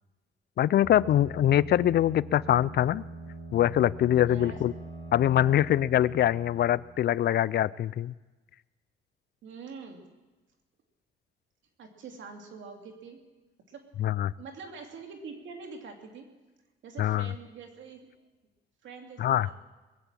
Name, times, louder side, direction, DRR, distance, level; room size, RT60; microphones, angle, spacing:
voice 1, 0.6-3.0 3.5-4.7 5.1-8.1 14.0-14.3 17.0-17.3 19.2-19.5, left 12 dB, 55° left, 20 dB, 0.4 m, -24 dB
sound 1, 0.8-7.4, right 2 dB, 25° left, 5.8 m, -43 dB
voice 2, 4.3-4.6 5.4-5.5 9.4-10.0 11.8-13.2 13.7-13.8 14.4-16.3 16.8-18.1 18.8-19.5, right 5 dB, 70° right, 3 dB, 2.6 m, -45 dB
21.0 x 8.1 x 7.5 m, 1.2 s
cardioid pair, 90°, 20 cm